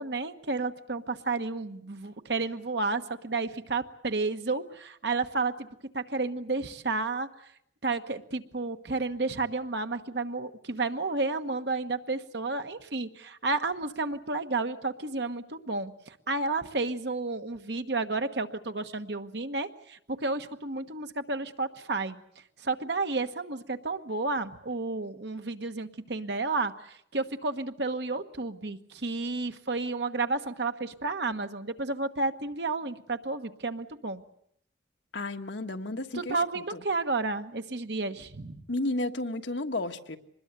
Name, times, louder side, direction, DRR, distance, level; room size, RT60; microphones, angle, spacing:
voice 1, 0.0-5.7 5.9-7.3 7.8-22.2 22.6-34.2 36.1-38.6, right 3 dB, 65° right, 8 dB, 1.3 m, -31 dB
voice 2, 35.1-36.4 38.7-40.2, left 2 dB, 85° left, 6 dB, 1.4 m, -32 dB
24.5 x 20.5 x 8.1 m, 0.69 s
head